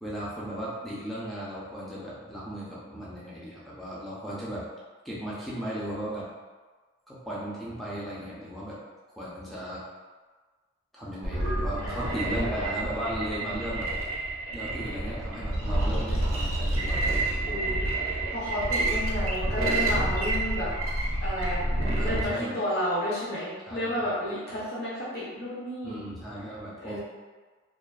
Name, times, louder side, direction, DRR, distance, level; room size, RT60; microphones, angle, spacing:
voice 1, 0.0-4.6 5.0-6.3 7.1-8.8 9.2-9.8 10.9-13.9 14.5-17.3 21.9-22.6 23.7-24.1 24.5-24.6 25.8-27.0, equal, ahead, -8 dB, 0.4 m, -36 dB
sound 1, 11.2-22.3, right 1 dB, 85° right, 0.5 m, -28 dB
voice 2, 11.8-12.6 17.4-17.9 18.2-20.7 21.2-26.0 26.8-27.0, equal, 50° left, -8 dB, 0.5 m, -32 dB
2.4 x 2.3 x 2.2 m, 1.4 s
head